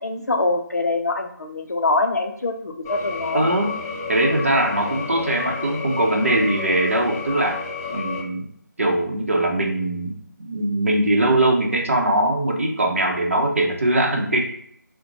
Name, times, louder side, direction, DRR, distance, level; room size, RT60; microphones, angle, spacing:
voice 1, 0.0-3.5, left 2 dB, 60° left, 4 dB, 0.5 m, -24 dB
sound 1, 2.8-8.2, left 4 dB, 5° left, 0.8 m, -31 dB
voice 2, 3.3-3.7 4.1-7.6 7.9-8.5 8.8-10.1 10.4-14.4, right 1 dB, 45° right, 2 dB, 0.7 m, -21 dB
4.0 x 2.1 x 2.7 m, 0.65 s
figure-of-eight pair, 165°, 10 cm